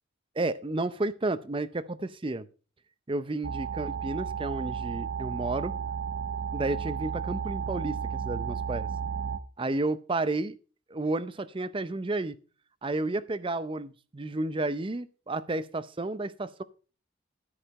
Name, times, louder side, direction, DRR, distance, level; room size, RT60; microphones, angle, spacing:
voice 1, 0.4-2.5 3.1-5.7 6.5-8.9 9.6-10.6 10.9-12.4 12.8-16.6, right 2 dB, 25° right, 15 dB, 0.5 m, -31 dB
sound 1, 3.4-9.4, right 7 dB, 70° right, 0.7 m, -33 dB
13.5 x 4.9 x 5.4 m, 0.36 s
head